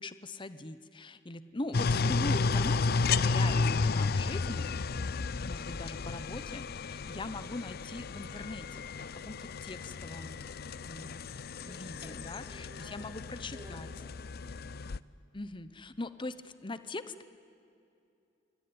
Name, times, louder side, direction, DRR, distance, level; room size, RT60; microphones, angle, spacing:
voice 1, 0.0-4.7 5.5-10.4 10.9-11.2 11.6-13.9 15.3-17.3, left 2 dB, 25° left, 13 dB, 0.8 m, -41 dB
sound 1, 1.7-15.0, left 4 dB, 50° left, 0.6 m, -32 dB
voice 2, 10.4-11.1 11.7-14.7, right 1 dB, 20° right, -1 dB, 4.8 m, -56 dB
26.5 x 23.0 x 9.7 m, 2.6 s
head